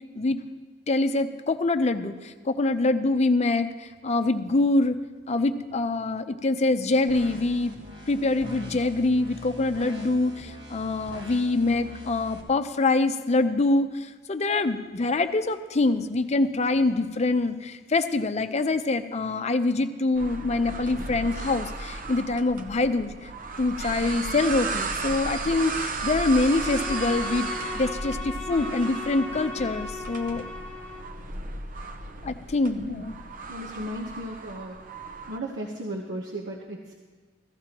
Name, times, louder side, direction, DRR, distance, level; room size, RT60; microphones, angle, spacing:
voice 1, 0.9-5.0 5.3-7.7 8.1-23.3 23.6-30.4 32.2-33.1, left 2 dB, 40° left, 9 dB, 0.6 m, -25 dB
sound 1, 7.1-12.4, left 1 dB, 70° right, 1.6 m, -42 dB
sound 2, 20.1-35.4, right 3 dB, 50° right, 0.7 m, -35 dB
Bowed string instrument, 26.3-31.2, left 3 dB, 10° left, 0.9 m, -37 dB
voice 2, 32.7-33.0 33.5-34.8 35.3-37.0, equal, 85° right, -2 dB, 1.1 m, -35 dB
15.5 x 14.0 x 3.0 m, 1.5 s
head